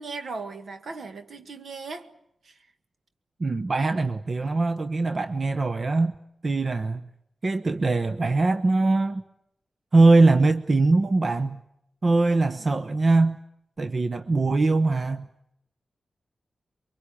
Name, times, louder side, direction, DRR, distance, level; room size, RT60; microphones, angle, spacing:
voice 1, 0.0-2.1 2.4-2.7 12.3-12.7, right 4 dB, 70° right, 1.8 m, -38 dB
voice 2, 3.4-6.1 6.4-7.1 7.4-9.2 9.9-11.6 12.0-13.4 13.8-15.3, right 3 dB, 50° right, 0.9 m, -22 dB
23.5 x 23.5 x 8.6 m
cardioid pair, 50°, 0 cm